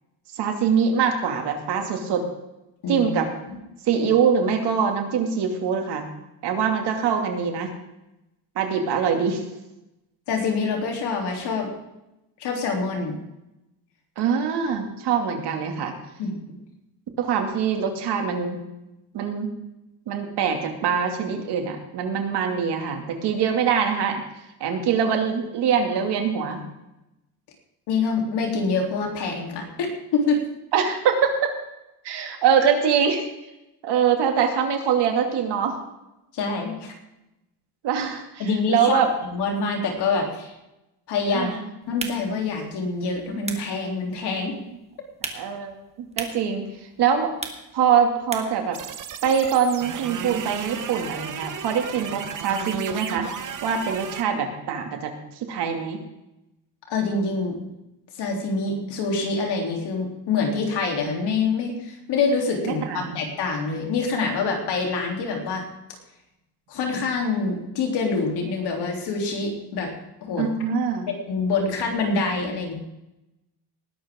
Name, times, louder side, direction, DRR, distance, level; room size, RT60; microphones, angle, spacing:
voice 1, 0.3-2.3 2.9-3.3 3.8-6.1 6.4-7.7 8.6-9.4 14.2-15.9 17.2-18.6 19.1-19.5 20.1-24.2 24.6-26.6 30.7-31.5 32.0-33.3 33.8-35.8 37.8-38.4 38.7-39.1 41.3-41.7 45.3-47.3 47.7-48.8 49.2-53.3 53.6-56.0 62.6-63.2 70.4-71.1, right 7 dB, 75° right, 3 dB, 2.6 m, -23 dB
voice 2, 10.3-11.7 12.4-13.2 16.2-16.4 27.9-30.4 36.3-36.9 38.4-40.5 41.1-41.6 41.9-44.6 56.9-57.6 58.2-65.6 66.7-69.9 70.2-70.5 71.1-72.7, left 4 dB, 75° left, 1 dB, 3.4 m, -26 dB
sound 1, 41.8-48.7, right 3 dB, 15° right, 1.5 m, -39 dB
sound 2, 48.7-54.2, right 8 dB, 50° right, 1.0 m, -34 dB
19.5 x 12.0 x 3.8 m, 0.93 s
cardioid pair, 140°, 40 cm